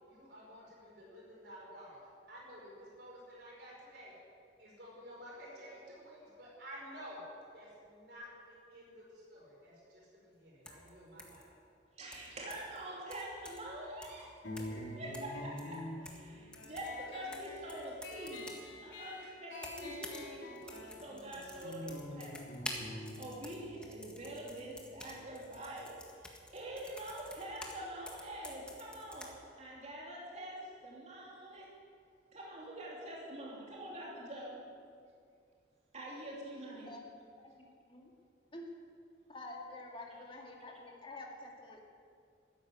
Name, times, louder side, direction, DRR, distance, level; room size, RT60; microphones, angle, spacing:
voice 1, 0.1-4.1 4.6-7.2 7.5-11.5, equal, 65° right, -4 dB, 5.1 m, -52 dB
sound 1, 10.7-10.9 11.2-11.4 12.1-12.8 13.1-13.7 14.0-14.2 14.6-14.8 15.1-16.3 16.5-18.7 19.5-20.3 20.6-27.8 28.1-29.3, left 1 dB, 5° left, 1.7 m, -49 dB
voice 2, 11.9-22.4 23.1-26.0 26.5-31.7 32.3-34.7 35.9-36.9 40.1-40.2, right 1 dB, 40° right, -4 dB, 2.9 m, -45 dB
sound 2, 14.4-25.6, left 1 dB, 75° left, 3.8 m, -47 dB
voice 3, 37.4-38.1 38.5-38.7 39.3-41.8, left 2 dB, 30° left, 0 dB, 2.2 m, -48 dB
13.5 x 10.5 x 9.4 m, 2.3 s
head